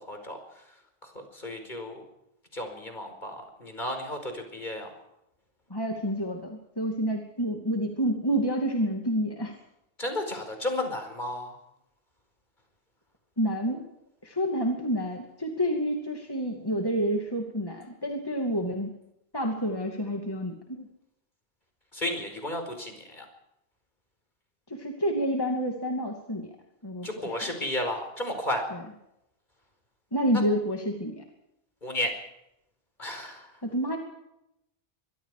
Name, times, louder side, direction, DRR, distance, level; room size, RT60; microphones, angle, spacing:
voice 1, 0.0-0.7 1.0-2.0 2.5-4.9 10.0-11.6 21.9-23.3 27.0-28.7 31.8-32.1 33.0-33.6, left 1 dB, 50° left, 5 dB, 5.2 m, -33 dB
voice 2, 5.7-9.5 13.4-13.9 14.2-18.9 19.3-20.9 24.7-26.5 26.8-27.3 28.7-28.8 30.1-31.2 33.6-34.0, equal, 20° left, 2 dB, 2.6 m, -29 dB
24.5 x 23.5 x 5.0 m, 0.84 s
omnidirectional pair, 1.1 m